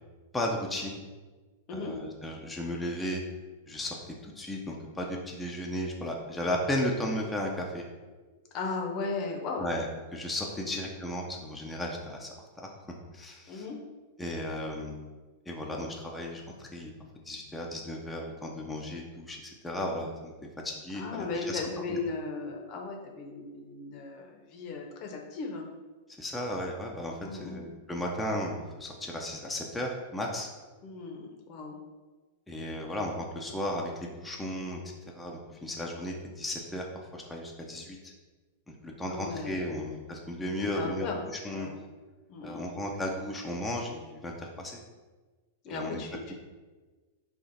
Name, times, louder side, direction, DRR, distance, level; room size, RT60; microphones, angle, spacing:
voice 1, 0.3-1.0 1.7-3.2 3.7-7.8 9.6-12.3 12.6-12.7 13.1-13.6 14.2-15.0 15.5-16.9 17.2-20.3 20.6-21.6 21.9-22.0 26.2-30.5 32.5-34.8 35.1-36.9 37.1-38.1 38.7-41.1 41.4-41.7 42.4-44.8 45.7-46.0, left 1 dB, 10° left, -1 dB, 0.5 m, -35 dB
voice 2, 8.5-9.6 10.6-10.8 13.5-13.8 20.9-25.7 27.2-27.6 30.8-31.8 39.1-39.8 40.6-41.2 41.5-41.8 42.3-42.7 45.6-46.4, left 3 dB, 45° left, 2 dB, 0.7 m, -36 dB
3.8 x 2.4 x 4.0 m, 1.3 s
hypercardioid pair, 105°, 0 cm